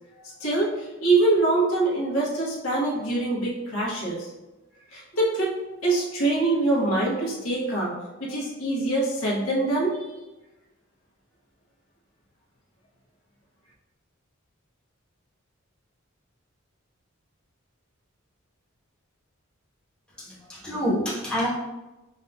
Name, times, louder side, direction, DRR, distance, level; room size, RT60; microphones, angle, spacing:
voice 1, 0.2-4.3 4.9-5.5 5.8-7.9 8.2-10.0, right 2 dB, 85° left, -4 dB, 1.1 m, -24 dB
voice 2, 20.2-21.5, equal, 5° left, -8 dB, 1.1 m, -27 dB
5.4 x 2.7 x 2.3 m, 1.0 s
head